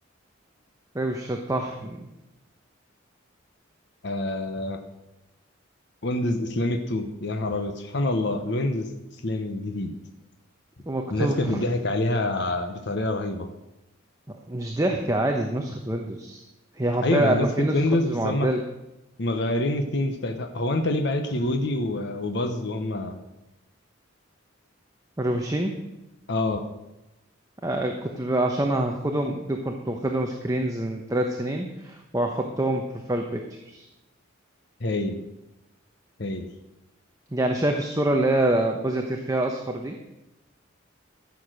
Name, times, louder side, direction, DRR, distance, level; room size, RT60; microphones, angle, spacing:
voice 1, 0.9-2.1 10.9-11.6 14.5-16.4 16.8-18.6 25.2-25.8 27.6-33.9 37.3-39.9, right 1 dB, 15° right, 2 dB, 0.9 m, -26 dB
voice 2, 4.0-4.8 6.0-8.9 9.2-9.9 11.1-13.5 17.0-18.5 19.2-23.3 26.3-26.6 34.8-35.2 36.2-36.5, left 1 dB, 60° left, 5 dB, 1.0 m, -26 dB
14.5 x 7.1 x 6.3 m, 0.95 s
head